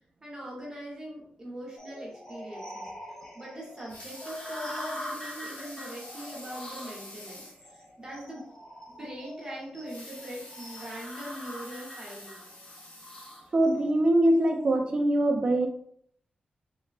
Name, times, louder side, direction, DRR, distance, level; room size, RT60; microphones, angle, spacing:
voice 1, 0.2-2.9 3.3-8.5 8.9-12.4, equal, 20° right, -5 dB, 1.0 m, -42 dB
sound 1, 1.8-14.8, equal, 20° left, 0.7 m, -43 dB
Water tap faucet / Sink (filling or washing) / Liquid, 3.7-7.7 8.1-8.2 8.5-8.6 9.7-13.9 14.5-14.6, left 1 dB, 80° left, 1.1 m, -47 dB
voice 2, 13.5-15.7, right 1 dB, 35° right, 2 dB, 0.4 m, -23 dB
3.1 x 2.2 x 2.4 m, 0.66 s
wide cardioid pair, 150°, 3 cm